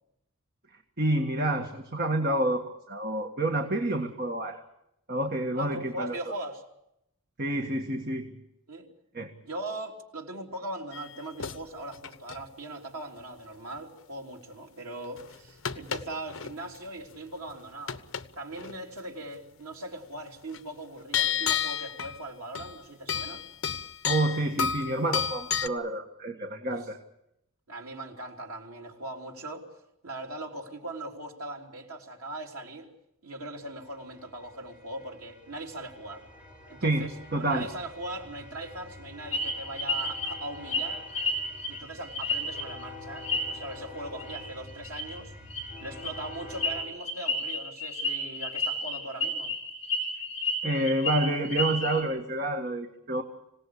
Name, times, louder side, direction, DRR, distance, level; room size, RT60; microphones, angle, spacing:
voice 1, 1.0-4.6 5.1-6.2 7.4-8.3 9.1-9.3 24.0-27.0 36.8-37.7 50.6-53.2, right 1 dB, 45° right, 1.7 m, -28 dB
voice 2, 5.5-6.6 8.7-8.9 9.4-18.0 18.4-23.5 27.7-29.7 30.0-32.9 33.2-36.2 36.7-41.1 41.7-45.3 45.8-49.5, right 1 dB, 85° right, 3.7 m, -40 dB
sound 1, 10.9-11.6 11.9-12.5 13.7-13.8 15.2-16.8 17.0-17.5 17.9-18.3 18.5-18.7 20.5-20.6 21.1-22.2 22.5-22.8 23.1-25.7, left 8 dB, 65° left, 1.0 m, -31 dB
sound 2, 33.6-46.8, left 2 dB, 5° right, 4.3 m, -47 dB
sound 3, 39.3-42.8 43.2-43.8 44.2-44.4 44.7-45.0 45.5-52.0, left 2 dB, 30° left, 5.9 m, -31 dB
26.5 x 17.5 x 8.5 m
head